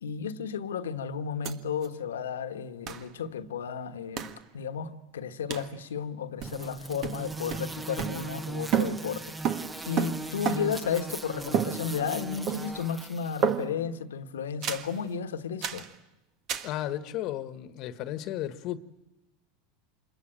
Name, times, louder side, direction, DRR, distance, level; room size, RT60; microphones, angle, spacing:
voice 1, 0.0-9.6 9.8-15.9, left 7 dB, 85° left, 1.4 m, -33 dB
sound 1, 1.4-1.5 1.8-1.9 2.9-3.1 4.2-4.4 5.5-5.7 6.4-6.7 7.0-8.5 8.7-10.9 11.5-12.2 12.5-12.9 13.4-13.9 14.6-14.9 15.6-15.9 16.5-16.8, right 8 dB, 50° right, 1.6 m, -31 dB
sound 2, 6.4-13.5, right 2 dB, 15° right, 1.1 m, -39 dB
voice 2, 16.6-18.8, left 13 dB, 50° left, 1.3 m, -34 dB
26.5 x 21.5 x 9.0 m
hypercardioid pair, 95°, 0 cm